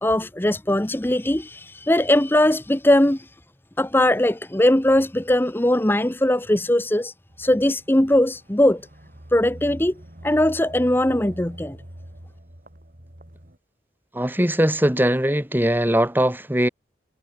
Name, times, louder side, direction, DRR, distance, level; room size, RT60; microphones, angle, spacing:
voice 1, 0.0-3.3 3.8-8.8 9.3-9.9 10.2-11.8, left 1 dB, 10° left, 0.9 m, -20 dB
sound 1, 7.3-13.6, right 1 dB, 50° right, 3.6 m, -43 dB
voice 2, 14.1-16.7, equal, 10° right, 2.5 m, -20 dB
head